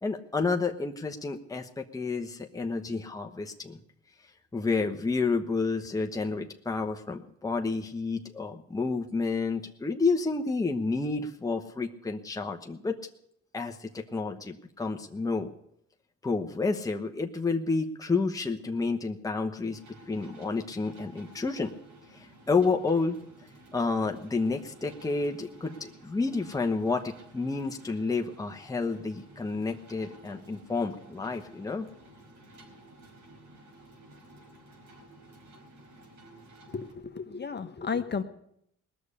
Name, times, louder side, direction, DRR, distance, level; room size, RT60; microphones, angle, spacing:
voice 1, 0.0-3.8 4.5-12.9 13.5-15.5 16.2-19.8 20.1-21.7 22.1-23.2 23.7-31.9, left 4 dB, 10° left, 3 dB, 1.1 m, -30 dB
sound 1, 19.7-36.9, right 1 dB, 70° right, 4.7 m, -53 dB
voice 2, 36.7-38.2, left 5 dB, 35° left, 7 dB, 1.3 m, -33 dB
19.0 x 6.8 x 9.9 m, 0.72 s
cardioid pair, 90°, 30 cm